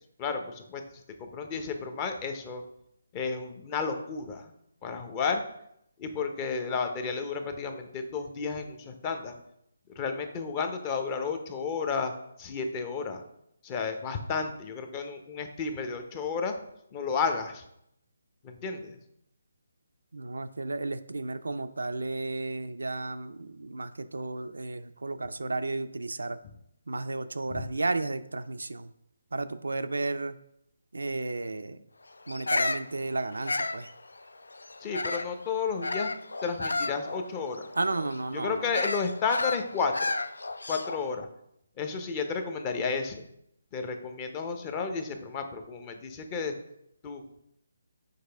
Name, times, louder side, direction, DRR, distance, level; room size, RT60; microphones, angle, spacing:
voice 1, 0.2-0.8 1.2-2.6 3.1-4.5 4.8-5.4 6.0-9.3 10.0-12.1 12.4-13.2 13.6-16.5 16.9-17.6 18.4-19.0 27.5-27.6 34.8-36.1 36.4-37.6 38.3-40.1 40.7-41.3 41.8-43.3 43.7-46.5 47.0-47.2, left 5 dB, 25° left, 6 dB, 0.7 m, -32 dB
voice 2, 20.1-26.4 26.9-28.9 29.3-30.3 30.9-31.8 32.3-33.9 37.8-38.7, right 2 dB, 80° right, 10 dB, 0.4 m, -33 dB
Bird vocalization bird call bird song, 32.3-35.4 35.8-41.1, left 3 dB, 80° left, 0.3 m, -32 dB
6.6 x 4.7 x 3.4 m, 0.77 s
figure-of-eight pair, 150°, 0 cm